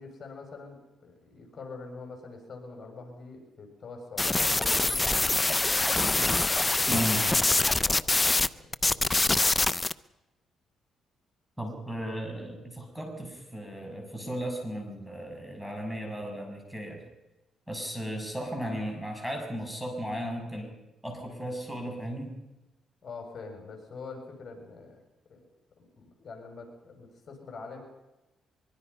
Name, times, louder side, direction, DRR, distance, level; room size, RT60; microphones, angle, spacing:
voice 1, 0.0-5.3 5.8-7.0 7.4-9.2 23.0-25.0 25.3-25.5 25.8-27.8, left 4 dB, 45° left, 3 dB, 6.9 m, -45 dB
sound 1, 4.2-8.5 8.7-9.9, left 2 dB, 20° left, 0.7 m, -24 dB
voice 2, 6.9-7.3 11.6-17.0 17.7-20.7 21.0-22.3, equal, 5° right, 3 dB, 6.6 m, -35 dB
23.5 x 23.5 x 5.6 m, 0.97 s
cardioid pair, 90°, 0 cm